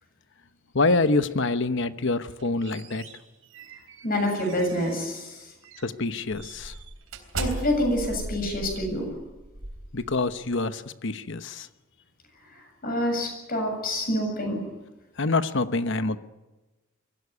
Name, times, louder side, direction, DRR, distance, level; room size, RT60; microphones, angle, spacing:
voice 1, 0.7-3.0 5.8-6.7 9.9-11.7 15.2-16.2, left 3 dB, 60° left, 11 dB, 1.0 m, -26 dB
sound 1, 2.2-5.2 5.6-5.9 6.3-10.5, right 2 dB, 75° right, 3.7 m, -38 dB
voice 2, 4.0-5.5 7.4-9.1 12.5-14.6, left 1 dB, 45° left, 3 dB, 7.6 m, -27 dB
23.5 x 16.0 x 9.7 m, 1.1 s
head